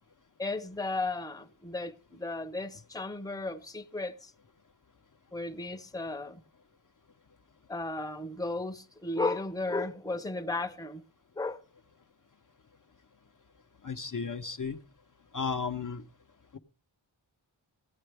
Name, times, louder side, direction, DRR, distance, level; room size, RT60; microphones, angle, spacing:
voice 1, 0.4-4.3 5.3-6.4 7.7-11.0 11.4-11.6, left 2 dB, 10° left, 0.8 m, -34 dB
voice 2, 13.8-14.8 15.3-16.0, left 5 dB, 40° left, 0.7 m, -34 dB
16.0 x 9.8 x 3.3 m
wide cardioid pair, 60°, 48 cm